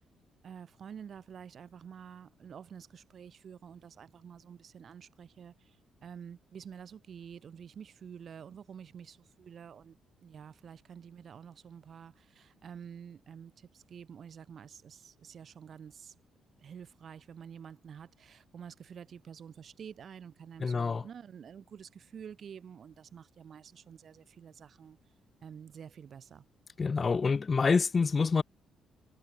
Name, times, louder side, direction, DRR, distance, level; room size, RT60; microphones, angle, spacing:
voice 1, 0.4-16.1 16.6-25.0 25.4-26.4, right 7 dB, 55° right, 7.3 m, -49 dB
voice 2, 20.6-21.0 26.8-28.4, left 5 dB, 35° left, 1.1 m, -27 dB
cardioid pair, 90°, 0 cm